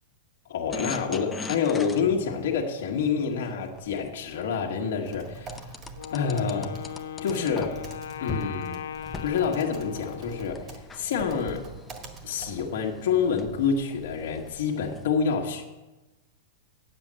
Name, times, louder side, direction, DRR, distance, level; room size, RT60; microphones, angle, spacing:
voice 1, 0.5-5.7 6.1-6.8 7.2-7.8 8.2-8.8 9.2-11.7 12.2-15.6, left 6 dB, 65° left, 0 dB, 1.5 m, -27 dB
sound 1, 0.7-4.6 5.5-7.9 8.3-8.5 8.9-15.0, left 4 dB, 10° left, 0.5 m, -42 dB
Typing, 4.9-13.1, right 3 dB, 25° right, 1.4 m, -46 dB
Wind instrument woodwind instrument, 5.9-10.8, left 9 dB, 90° left, 0.8 m, -38 dB
8.9 x 7.5 x 7.5 m, 1.1 s
supercardioid pair, 160°, 0 cm